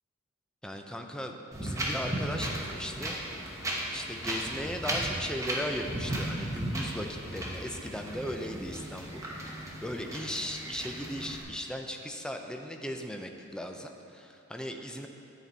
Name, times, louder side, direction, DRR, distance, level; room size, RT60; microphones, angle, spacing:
voice 1, 0.6-3.2 3.9-15.1, equal, 5° left, 4 dB, 0.4 m, -38 dB
Wind, 1.5-11.4, right 1 dB, 15° right, 0.9 m, -35 dB
9.8 x 4.1 x 4.5 m, 2.7 s
head